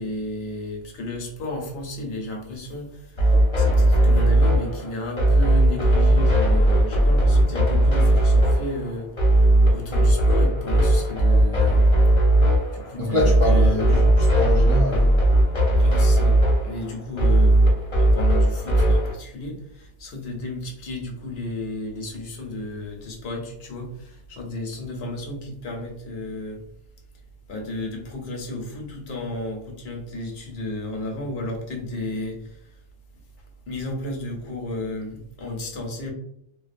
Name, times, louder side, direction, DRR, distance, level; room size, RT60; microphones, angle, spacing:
voice 1, 0.0-9.1 9.7-11.8 12.7-14.0 15.8-26.6 27.5-32.4 33.7-36.1, left 2 dB, 65° left, 0.8 m, -33 dB
sound 1, 3.2-19.1, right 1 dB, 30° left, 0.7 m, -18 dB
voice 2, 12.9-15.1, left 1 dB, 55° right, 0.3 m, -25 dB
2.4 x 2.2 x 2.4 m
omnidirectional pair, 1.2 m